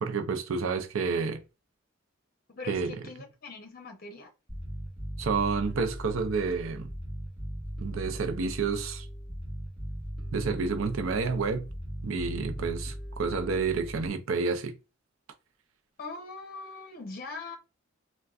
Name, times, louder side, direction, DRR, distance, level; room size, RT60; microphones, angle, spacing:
voice 1, 0.0-1.4 2.7-3.0 5.2-6.9 7.8-9.1 10.3-11.7 12.0-14.7, right 4 dB, 80° right, 0.5 m, -29 dB
voice 2, 2.5-4.3 16.0-17.6, left 3 dB, 45° left, 0.7 m, -41 dB
Bass guitar, 4.5-14.1, equal, 5° right, 1.8 m, -38 dB
3.5 x 2.2 x 2.3 m
head